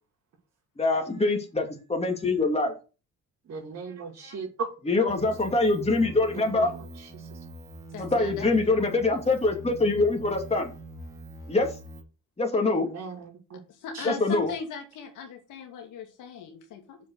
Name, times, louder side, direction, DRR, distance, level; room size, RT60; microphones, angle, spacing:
voice 1, 0.8-2.7 4.2-4.3 4.9-6.7 8.0-10.7 11.5-11.7 12.4-12.9 14.0-14.5, left 3 dB, 20° left, 2 dB, 2.5 m, -24 dB
voice 2, 3.5-4.5 6.2-7.3 12.7-13.6 13.9-14.2, right 5 dB, 65° right, -5 dB, 3.6 m, -39 dB
sound 1, 5.1-12.0, right 1 dB, 10° right, 2.7 m, -43 dB
voice 3, 7.9-8.9 13.7-17.0, left 6 dB, 90° left, 4 dB, 2.5 m, -39 dB
7.4 x 5.3 x 6.5 m, 0.32 s
cardioid pair, 90°, 30 cm